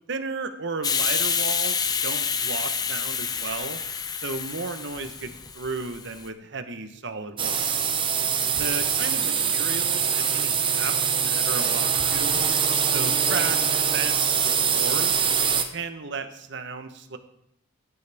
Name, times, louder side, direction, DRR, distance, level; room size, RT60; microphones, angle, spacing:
voice 1, 0.1-3.8 4.2-7.8 8.6-12.4 12.9-15.2 15.7-17.2, right 4 dB, 60° right, 8 dB, 1.0 m, -34 dB
Hiss, 0.8-6.2, left 6 dB, 20° left, 0.5 m, -28 dB
sound 1, 7.4-15.6, right 7 dB, 25° right, 0.7 m, -23 dB
15.0 x 9.6 x 3.5 m, 0.74 s
head